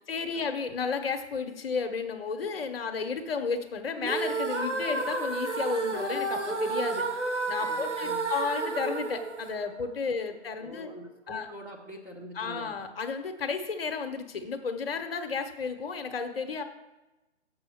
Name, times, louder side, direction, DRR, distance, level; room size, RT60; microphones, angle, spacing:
voice 1, 0.1-7.0 7.5-10.9 11.3-11.5 12.3-16.6, left 5 dB, 55° left, 7 dB, 1.0 m, -32 dB
sound 1, 4.0-10.2, right 3 dB, 90° right, 1.2 m, -31 dB
voice 2, 7.6-8.2 10.6-12.7, equal, 5° right, -4 dB, 1.1 m, -45 dB
7.1 x 4.8 x 7.1 m, 1.0 s
figure-of-eight pair, 135°, 34 cm